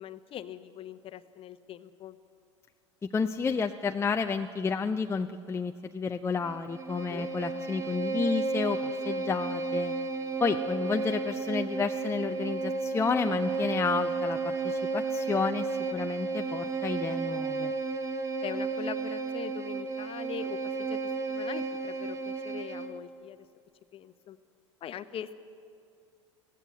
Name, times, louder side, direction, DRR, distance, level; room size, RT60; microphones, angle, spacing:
voice 1, 0.0-2.2 7.1-7.3 18.4-21.0 21.3-23.4 23.9-24.4 24.8-25.4, left 9 dB, 35° left, 12 dB, 1.0 m, -41 dB
voice 2, 3.0-9.9 10.4-17.7, left 5 dB, 15° left, 6 dB, 0.6 m, -31 dB
Bowed string instrument, 6.4-23.0, right 4 dB, 20° right, 1.4 m, -33 dB
23.0 x 16.0 x 7.7 m, 2.4 s
figure-of-eight pair, 80°, 16 cm